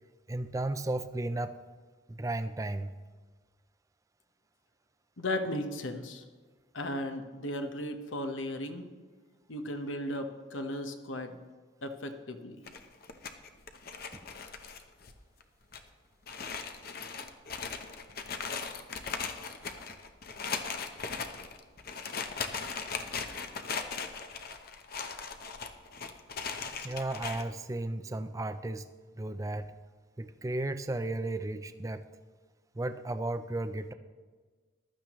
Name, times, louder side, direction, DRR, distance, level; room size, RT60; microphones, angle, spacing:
voice 1, 0.3-1.5 2.1-2.9 26.8-28.9 29.1-29.7 30.2-32.1 32.7-33.9, right 2 dB, 15° right, 10 dB, 0.4 m, -34 dB
voice 2, 5.2-6.2 6.7-8.9 9.5-11.4 11.8-12.6, left 1 dB, 75° left, 6 dB, 1.1 m, -36 dB
sound 1, 12.7-15.1 15.4-15.5 15.7-15.8 16.3-27.4, left 5 dB, 50° left, 0.8 m, -38 dB
15.5 x 12.0 x 3.1 m, 1.4 s
head